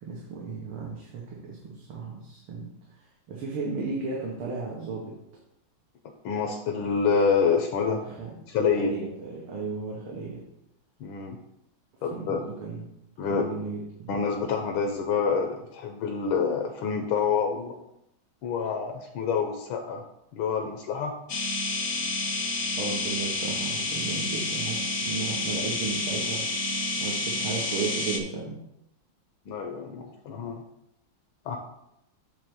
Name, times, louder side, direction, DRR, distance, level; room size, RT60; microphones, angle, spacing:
voice 1, 0.0-5.1 8.0-8.3 8.8-10.4 12.1-12.8 13.3-14.1 22.4-28.6, right 4 dB, 90° right, -3 dB, 2.1 m, -35 dB
voice 2, 6.2-8.0 8.5-8.9 11.0-11.4 12.0-12.4 13.2-13.4 14.1-17.8 18.4-20.0 20.3-21.1 29.5-30.6 31.4-31.6, left 5 dB, 80° left, 3 dB, 1.6 m, -27 dB
sound 1, 21.3-28.2, left 2 dB, 60° left, 0.7 m, -29 dB
8.6 x 3.3 x 6.2 m, 0.82 s
omnidirectional pair, 2.2 m